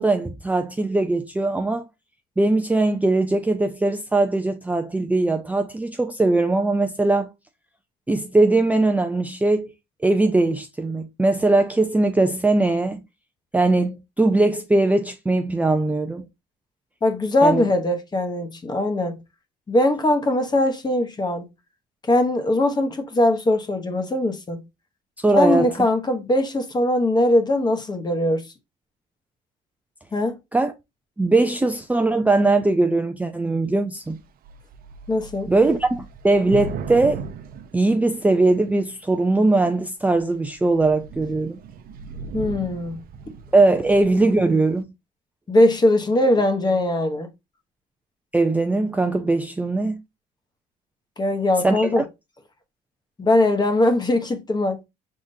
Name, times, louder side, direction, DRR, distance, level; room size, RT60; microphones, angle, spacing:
voice 1, 0.0-1.8 2.4-7.3 8.1-9.7 10.0-13.0 13.5-16.3 17.4-17.7 25.2-25.7 30.5-30.7 31.2-34.2 35.5-37.2 37.7-41.6 43.5-44.8 48.3-49.9 51.6-52.0, right 2 dB, 10° right, 0.4 m, -20 dB
voice 2, 17.0-19.2 19.7-21.4 22.1-24.6 25.3-28.4 30.1-30.4 35.1-35.5 42.3-43.0 45.5-47.3 51.2-52.0 53.2-54.8, left 1 dB, 25° left, 1.0 m, -21 dB
Thunder / Rain, 34.1-34.2 34.4-38.6 39.3-39.7 40.2-40.3 40.6-44.3, right 6 dB, 60° right, 0.7 m, -37 dB
4.9 x 3.7 x 2.7 m
cardioid pair, 110°, 17 cm